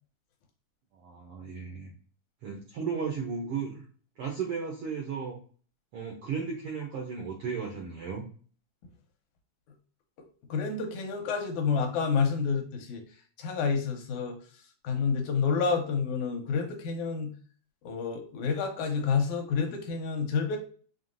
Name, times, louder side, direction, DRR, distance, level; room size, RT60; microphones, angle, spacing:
voice 1, 0.9-1.9 2.4-3.8 4.2-5.4 5.9-8.2, right 6 dB, 75° right, 0 dB, 1.3 m, -35 dB
voice 2, 10.5-13.0 13.4-14.4 14.8-17.3 17.9-20.6, left 5 dB, 80° left, 3 dB, 2.1 m, -29 dB
5.5 x 2.8 x 2.6 m, 0.42 s
omnidirectional pair, 3.5 m